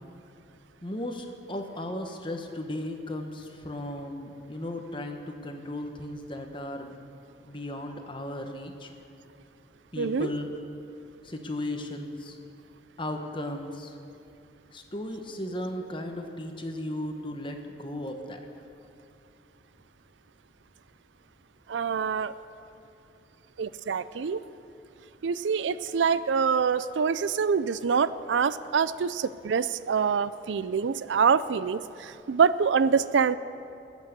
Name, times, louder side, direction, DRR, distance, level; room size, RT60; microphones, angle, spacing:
voice 1, 0.8-7.0 7.4-8.9 9.9-10.5 11.2-12.4 13.0-14.0 14.7-18.4, left 1 dB, 25° left, 4 dB, 1.1 m, -36 dB
voice 2, 10.0-10.3 21.7-22.3 23.6-24.4 25.2-33.3, right 6 dB, 80° right, 16 dB, 0.4 m, -25 dB
21.0 x 8.4 x 6.7 m, 2.7 s
head